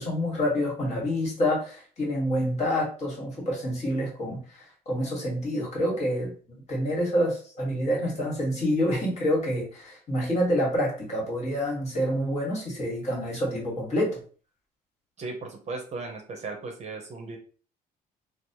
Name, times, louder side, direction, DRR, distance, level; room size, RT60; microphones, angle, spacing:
voice 1, 0.0-14.2, equal, 40° left, -3 dB, 1.5 m, -27 dB
voice 2, 15.2-17.4, right 3 dB, 40° right, 3 dB, 0.7 m, -36 dB
3.0 x 2.0 x 2.8 m, 0.40 s
cardioid pair, 110°, 17 cm